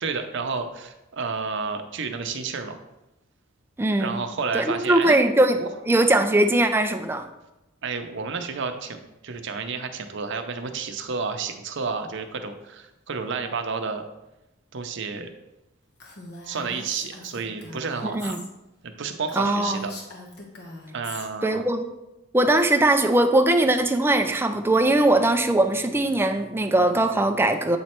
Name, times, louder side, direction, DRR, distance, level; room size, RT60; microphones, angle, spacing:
voice 1, 0.0-2.8 4.0-5.2 5.6-5.7 7.8-14.0 14.7-15.3 16.4-18.4 18.8-19.9 20.9-21.6, right 5 dB, 65° right, 7 dB, 0.6 m, -31 dB
voice 2, 3.8-4.2 4.5-7.3 18.0-18.4 19.3-19.9 21.4-21.9 22.3-27.8, right 1 dB, 10° right, 6 dB, 0.4 m, -21 dB
Female speech woman speaking, 16.0-18.5 18.8-18.9 19.3-21.3, left 2 dB, 55° left, 1.1 m, -41 dB
8.0 x 3.2 x 4.4 m, 0.95 s
head